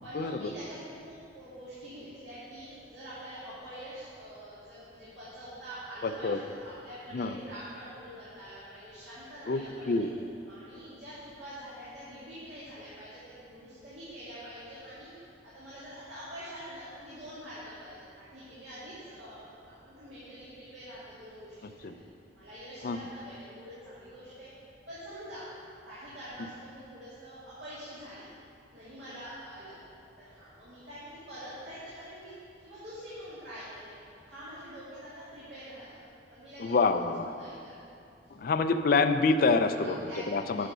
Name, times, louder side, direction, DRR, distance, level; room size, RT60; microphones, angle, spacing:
voice 1, 0.0-10.1 10.5-15.1 15.4-21.9 22.3-24.5 24.9-25.5 25.8-28.3 28.7-29.8 30.2-32.3 32.6-33.9 34.2-37.7 39.7-40.7, equal, 70° right, -11 dB, 2.4 m, -45 dB
voice 2, 6.0-6.4 7.1-7.4 9.5-10.1 21.8-21.9 22.8-23.0 36.6-37.3 38.3-40.0 40.3-40.7, left 4 dB, 55° left, 8 dB, 0.4 m, -26 dB
8.6 x 5.6 x 6.7 m, 2.5 s
head